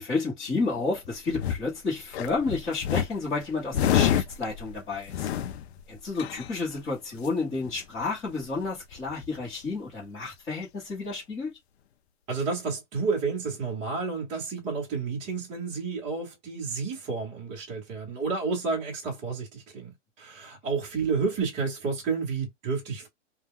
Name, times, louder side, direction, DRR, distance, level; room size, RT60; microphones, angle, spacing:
voice 1, 0.0-5.3 5.9-11.5, left 3 dB, 10° left, 1.0 m, -31 dB
sound 1, 0.8-1.7 2.1-6.8 7.2-7.3 7.6-8.0 8.3-8.4 8.6-9.4 10.3-10.4, left 10 dB, 60° left, 0.5 m, -29 dB
voice 2, 12.3-23.1, right 4 dB, 20° right, 0.9 m, -30 dB
2.2 x 2.2 x 3.6 m
hypercardioid pair, 155°, 37 cm